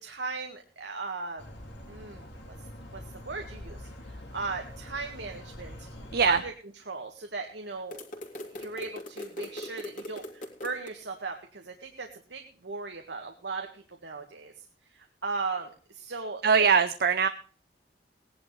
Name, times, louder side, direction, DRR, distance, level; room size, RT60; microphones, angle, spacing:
voice 1, 0.0-1.4 1.9-2.2 2.9-5.9 6.3-6.5 6.9-8.0 8.5-14.5 14.9-16.7, right 4 dB, 85° right, 3 dB, 1.7 m, -37 dB
sound 1, 1.4-6.4, left 1 dB, 75° left, 2.9 m, -45 dB
voice 2, 6.1-6.4 16.4-17.3, right 6 dB, 60° right, 11 dB, 0.7 m, -21 dB
sound 2, 7.9-10.9, left 1 dB, 50° left, 3.0 m, -41 dB
19.0 x 11.0 x 3.2 m, 0.41 s
head